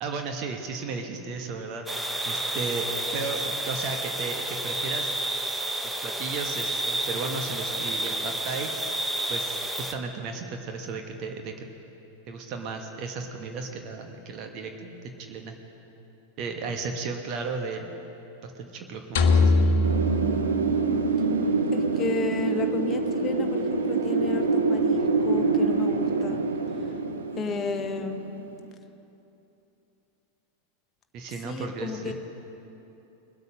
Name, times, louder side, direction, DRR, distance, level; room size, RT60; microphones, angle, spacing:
voice 1, 0.0-1.9 2.2-5.2 5.8-8.7 9.3-11.6 12.3-15.5 16.4-18.0 18.4-19.5 31.1-32.1, right 4 dB, 40° right, 4 dB, 1.2 m, -34 dB
sound 1, 1.9-9.9, right 1 dB, 5° right, 0.9 m, -30 dB
sound 2, 19.2-21.4, left 2 dB, 55° left, 0.9 m, -22 dB
Wind, 19.8-28.5, right 4 dB, 70° right, 0.9 m, -25 dB
voice 2, 21.7-26.4 26.7-26.9 27.4-28.2 31.4-32.1, left 5 dB, 25° left, 6 dB, 1.0 m, -33 dB
21.5 x 8.2 x 5.4 m, 3.0 s
figure-of-eight pair, 90°, 0 cm